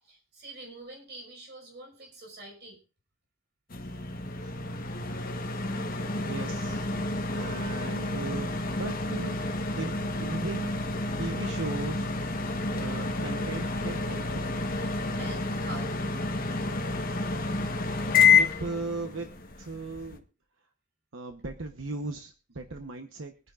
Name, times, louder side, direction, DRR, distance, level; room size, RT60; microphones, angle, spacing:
voice 1, 0.0-2.8 15.1-16.0, right 2 dB, 55° right, 1 dB, 5.5 m, -45 dB
sound 1, 3.7-20.2, left 4 dB, 45° left, 1.3 m, -29 dB
voice 2, 6.2-6.9 7.3-9.4 9.8-12.1 12.7-14.3 18.2-20.2 21.1-23.3, right 3 dB, 85° right, 6 dB, 1.0 m, -37 dB
23.5 x 9.7 x 2.5 m, 0.33 s
head